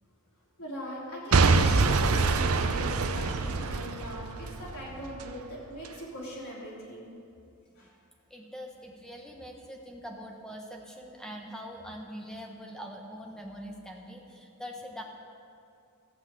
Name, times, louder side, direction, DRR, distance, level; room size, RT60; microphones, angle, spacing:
voice 1, 0.6-7.1 7.8-7.9, left 1 dB, 80° left, -5 dB, 3.4 m, -41 dB
Boom / Shatter / Crushing, 1.3-5.3 5.8-5.9, right 4 dB, 80° right, 0.6 m, -25 dB
voice 2, 8.3-15.0, equal, 5° left, 1 dB, 1.1 m, -43 dB
14.5 x 6.0 x 8.4 m, 2.5 s
head